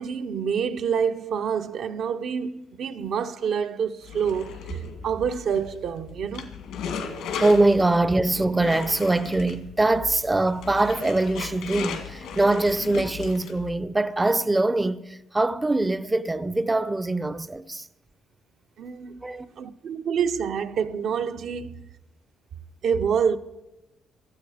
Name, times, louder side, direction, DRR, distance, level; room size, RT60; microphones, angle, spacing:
voice 1, 0.0-6.5 18.8-19.3 19.6-21.8 22.8-23.4, right 7 dB, 70° right, 0.8 m, -27 dB
sound 1, 4.0-13.8, left 6 dB, 85° left, 2.1 m, -36 dB
voice 2, 7.4-17.9 19.2-19.5, right 2 dB, 15° right, 0.5 m, -23 dB
17.5 x 12.5 x 4.9 m
cardioid pair, 90°, 0 cm